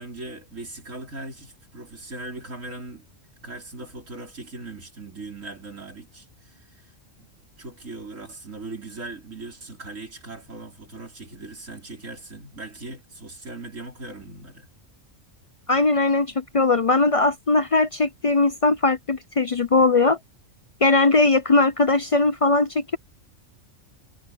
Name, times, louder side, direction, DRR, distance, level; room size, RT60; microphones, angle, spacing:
voice 1, 0.0-3.1 3.4-7.3 7.6-14.7, right 2 dB, 70° right, 5.4 m, -39 dB
voice 2, 15.7-20.2 20.8-23.0, left 3 dB, 45° left, 0.4 m, -20 dB
omnidirectional pair, 1.4 m